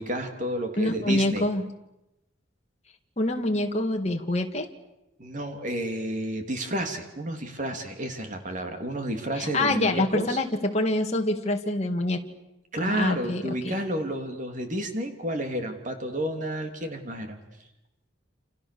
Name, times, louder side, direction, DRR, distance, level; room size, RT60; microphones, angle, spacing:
voice 1, 0.0-1.4 5.2-10.4 12.7-17.4, right 1 dB, 40° right, 5 dB, 3.0 m, -31 dB
voice 2, 0.8-1.6 3.2-4.7 9.4-12.2 12.8-13.7, left 1 dB, 35° left, 2 dB, 2.0 m, -26 dB
29.0 x 28.0 x 6.9 m, 0.93 s
head